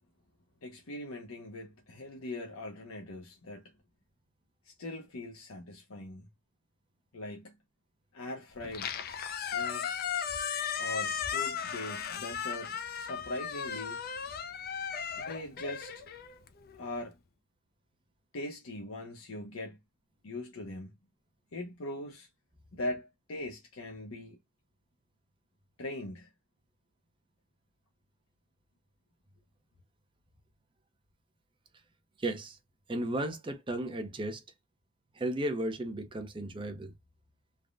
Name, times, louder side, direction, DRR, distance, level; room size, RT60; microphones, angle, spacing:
voice 1, 0.6-3.6 4.7-6.3 7.1-7.5 8.1-8.9 9.4-10.1 10.8-14.0 15.2-16.0 16.8-17.2 18.3-19.8 20.2-20.9 21.5-22.3 22.7-24.4 25.8-26.3, left 1 dB, 80° left, 0.7 m, -41 dB
Squeak, 8.6-16.8, left 7 dB, 45° left, 0.4 m, -36 dB
voice 2, 32.2-32.6 32.9-34.4 35.2-36.9, right 1 dB, 25° right, 0.5 m, -34 dB
3.4 x 2.1 x 2.4 m
head